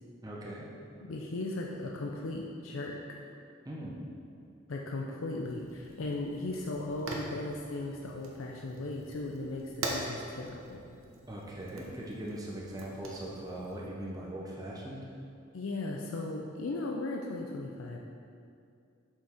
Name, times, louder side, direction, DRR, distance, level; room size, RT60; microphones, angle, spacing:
voice 1, 0.2-0.7 3.6-4.0 11.3-15.2, right 1 dB, 20° right, -4 dB, 0.8 m, -40 dB
voice 2, 1.0-3.0 4.7-10.8 15.5-18.0, left 2 dB, 80° left, 0 dB, 0.6 m, -37 dB
Fire, 5.4-13.8, right 2 dB, 80° right, 1.0 m, -43 dB
6.8 x 5.8 x 4.4 m, 2.5 s
head